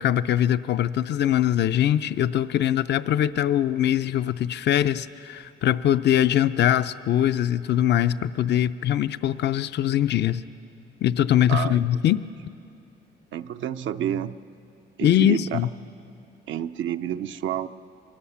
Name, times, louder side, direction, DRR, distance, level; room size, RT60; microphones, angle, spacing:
voice 1, 0.0-10.4 11.0-12.2 15.0-15.7, left 11 dB, 60° left, 13 dB, 0.5 m, -22 dB
voice 2, 11.5-11.8 13.3-14.4 15.0-15.6 16.5-17.7, right 10 dB, 75° right, 9 dB, 0.6 m, -29 dB
24.0 x 19.0 x 7.0 m, 2.6 s
cardioid pair, 90°, 20 cm